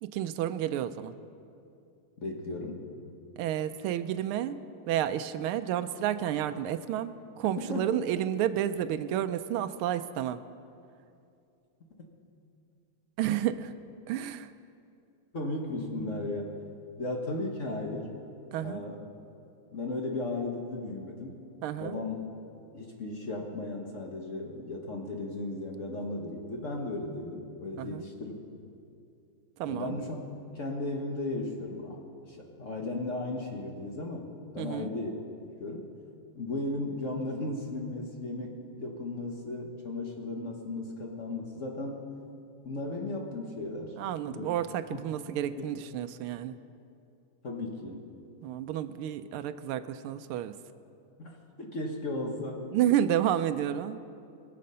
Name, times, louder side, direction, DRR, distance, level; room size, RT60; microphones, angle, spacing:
voice 1, 0.0-1.1 3.4-4.6 4.9-10.4 13.2-13.7 14.1-14.5 18.5-18.8 21.6-22.0 27.8-28.1 29.6-30.0 34.6-34.9 44.0-46.5 48.4-50.5 52.7-54.1, right 11 dB, 90° right, 12 dB, 1.5 m, -31 dB
voice 2, 2.2-2.8 7.6-8.0 12.0-12.1 15.3-16.5 17.0-18.1 18.6-19.1 19.7-21.4 21.8-22.2 22.7-28.3 29.7-30.2 30.5-32.0 32.2-35.1 35.6-35.9 36.3-38.5 38.8-42.0 42.6-44.0 44.3-44.5 44.9-45.0 45.4-45.6 47.4-48.1 51.2-52.6, left 2 dB, 45° left, 1 dB, 1.2 m, -35 dB
21.5 x 7.5 x 5.5 m, 2.5 s
omnidirectional pair, 2.3 m